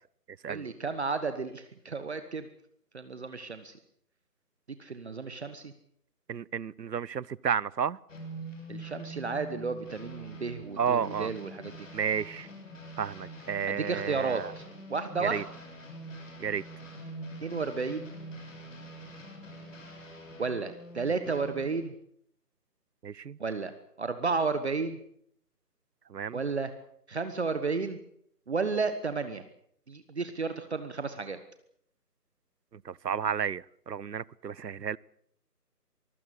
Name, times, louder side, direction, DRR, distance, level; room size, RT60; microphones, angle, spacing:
voice 1, 0.5-2.5 2.9-3.8 4.7-5.7 8.7-11.9 13.7-14.6 14.9-15.4 17.4-18.1 20.4-21.9 23.4-25.0 26.3-26.7 27.1-28.0 28.5-29.4 29.9-31.4, right 4 dB, 45° right, 11 dB, 1.4 m, -32 dB
voice 2, 6.3-8.0 10.8-11.3 11.9-12.5 13.0-14.5 15.2-15.4 16.4-16.6 23.0-23.4 26.1-26.4 32.7-35.0, right 7 dB, 90° right, 26 dB, 0.8 m, -32 dB
sound 1, 8.1-21.9, right 1 dB, 50° left, 7.0 m, -45 dB
24.0 x 15.5 x 8.3 m, 0.68 s
figure-of-eight pair, 165°, 48 cm